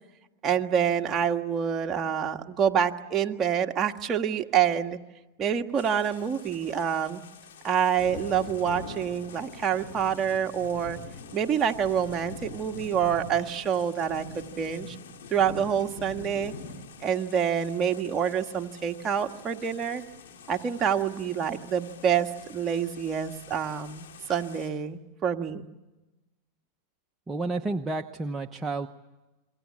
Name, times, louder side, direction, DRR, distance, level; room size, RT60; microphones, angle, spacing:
voice 1, 0.4-5.0 5.4-7.2 7.6-11.0 11.3-15.0 15.3-16.5 17.0-20.0 20.5-25.7, right 8 dB, 30° right, 4 dB, 1.6 m, -27 dB
sound 1, 5.8-24.7, left 5 dB, 80° left, 4.1 m, -45 dB
voice 2, 27.3-28.9, right 3 dB, 15° right, 3 dB, 1.0 m, -30 dB
27.5 x 23.0 x 8.7 m, 1.1 s
hypercardioid pair, 120°, 0 cm